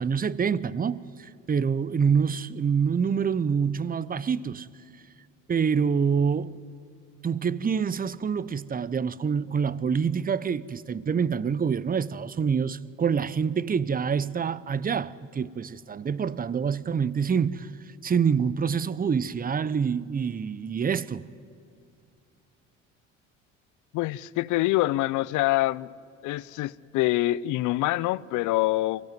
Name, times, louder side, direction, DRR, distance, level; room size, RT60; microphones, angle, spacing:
voice 1, 0.0-4.7 5.5-6.6 7.2-17.7 18.0-21.3, right 6 dB, 25° right, 0.8 m, -26 dB
voice 2, 23.9-25.9 26.2-29.0, left 17 dB, 65° left, 0.6 m, -25 dB
23.5 x 16.5 x 9.4 m
hypercardioid pair, 70°, 32 cm